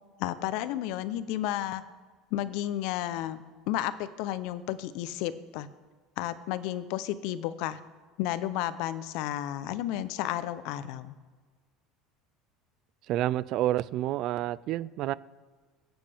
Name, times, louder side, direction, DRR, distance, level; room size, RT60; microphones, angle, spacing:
voice 1, 0.2-1.8 2.3-5.7 6.2-7.8 8.2-11.2, left 13 dB, 65° left, 0.7 m, -32 dB
voice 2, 13.1-15.1, right 14 dB, 50° right, 0.3 m, -29 dB
17.0 x 8.9 x 3.5 m
cardioid pair, 140°, 0 cm